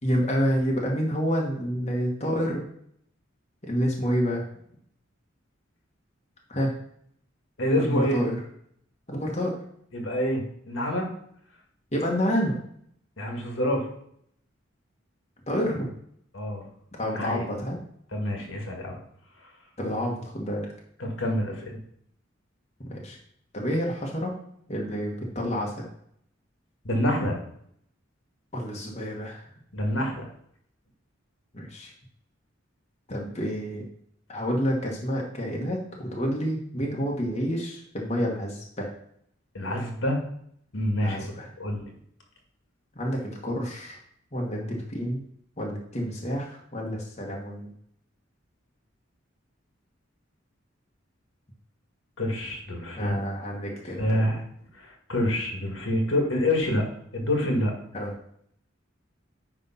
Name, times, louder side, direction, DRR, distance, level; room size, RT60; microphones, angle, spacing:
voice 1, 0.0-2.6 3.6-4.4 6.5-6.7 7.8-8.4 9.1-9.6 11.9-12.5 15.5-15.9 17.0-17.8 19.8-20.7 22.9-23.2 23.5-24.3 24.7-25.8 28.5-29.5 31.5-31.9 33.1-33.8 34.3-38.9 41.0-41.5 42.9-44.0 44.3-45.2 45.6-47.7 53.0-54.2 57.9-58.1, equal, 35° left, -2 dB, 1.4 m, -28 dB
voice 2, 7.6-8.2 9.9-11.1 13.2-13.9 16.3-16.6 17.1-17.5 18.1-19.0 21.0-21.8 26.9-27.4 29.7-30.3 39.5-40.2 40.7-41.3 41.6-41.8 52.2-53.1 54.0-54.4 54.8-56.8 57.1-57.7, left 1 dB, 70° left, 2 dB, 1.9 m, -27 dB
9.5 x 3.5 x 5.6 m, 0.68 s
head